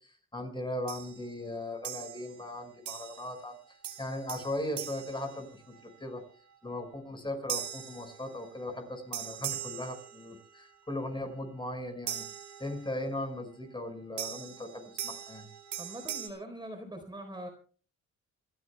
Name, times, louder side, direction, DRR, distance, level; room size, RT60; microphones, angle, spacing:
voice 1, 0.0-6.2 6.6-12.2 12.6-15.5, left 1 dB, 15° left, 5 dB, 5.3 m, -38 dB
sound 1, 0.9-1.3 1.8-2.4 2.9-3.4 3.8-6.0 7.5-8.7 9.1-10.6 12.1-13.1 14.2-16.3, right 10 dB, 75° right, 3.4 m, -41 dB
voice 2, 15.8-17.5, right 1 dB, 15° right, 4 dB, 4.0 m, -42 dB
28.0 x 13.5 x 2.3 m, 0.41 s
cardioid pair, 90°, 30 cm